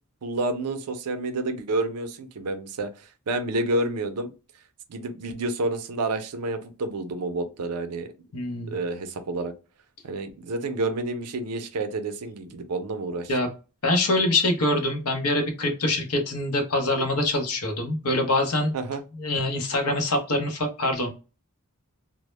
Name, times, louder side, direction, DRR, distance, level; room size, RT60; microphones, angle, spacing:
voice 1, 0.2-4.3 4.9-8.1 8.7-9.5 10.0-13.3 18.7-19.0, right 2 dB, 85° right, 0.5 m, -29 dB
voice 2, 8.3-8.8 13.3-13.5 13.8-18.7 19.1-21.1, left 1 dB, 75° left, 0.7 m, -24 dB
2.0 x 2.0 x 3.1 m
head